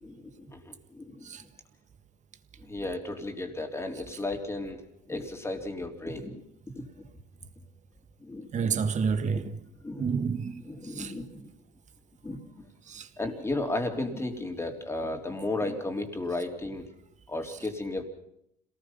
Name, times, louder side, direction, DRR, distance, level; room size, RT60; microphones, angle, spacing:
voice 1, 0.0-1.3 2.6-4.8 5.1-6.4 6.8-7.1 8.2-8.8 9.8-10.1 10.7-11.5 12.2-12.6 13.2-16.8 17.3-18.0, left 2 dB, 15° left, 3.6 m, -34 dB
voice 2, 8.5-9.6 10.0-11.1 12.9-13.1, right 5 dB, 45° right, 1.7 m, -30 dB
26.5 x 19.0 x 5.8 m
cardioid pair, 110°, 17 cm